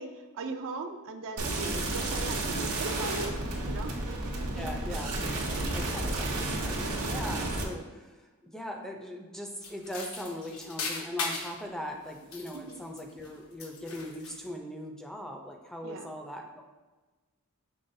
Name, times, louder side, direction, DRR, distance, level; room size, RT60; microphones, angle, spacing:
voice 1, 0.0-3.3 3.6-3.9 5.9-6.0 12.5-12.8 15.8-16.2, right 3 dB, 60° right, 6 dB, 0.4 m, -39 dB
sound 1, 1.4-7.6, right 2 dB, 80° right, 0.9 m, -32 dB
voice 2, 4.5-5.1 5.7-16.7, equal, ahead, 2 dB, 0.4 m, -40 dB
sound 2, 9.6-11.6 12.1-13.3 13.6-14.5, left 4 dB, 70° left, 0.7 m, -38 dB
5.4 x 3.7 x 2.6 m, 1.2 s
head